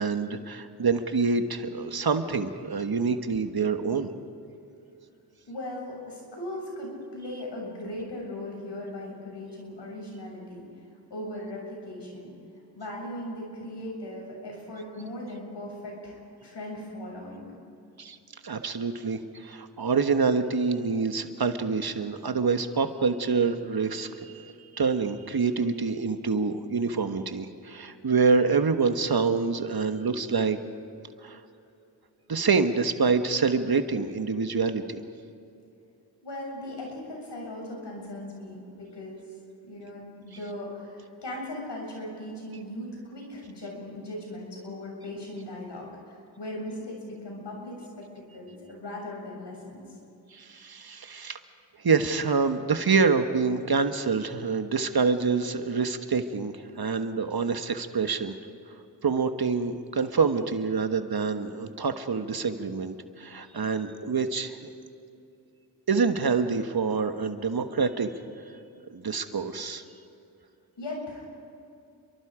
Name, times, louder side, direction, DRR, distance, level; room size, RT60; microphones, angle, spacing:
voice 1, 0.0-4.1 18.0-18.2 18.4-30.6 31.2-31.4 32.3-35.0 50.3-51.4 51.8-58.3 59.0-64.7 65.9-68.1 68.9-69.8, right 5 dB, 60° right, 8 dB, 1.5 m, -26 dB
voice 2, 5.5-10.8 11.1-12.3 12.7-17.5 36.2-39.3 39.6-49.8 70.8-71.3, left 1 dB, 80° left, -1 dB, 7.3 m, -38 dB
29.5 x 23.5 x 5.1 m, 2.6 s
cardioid pair, 50°, 42 cm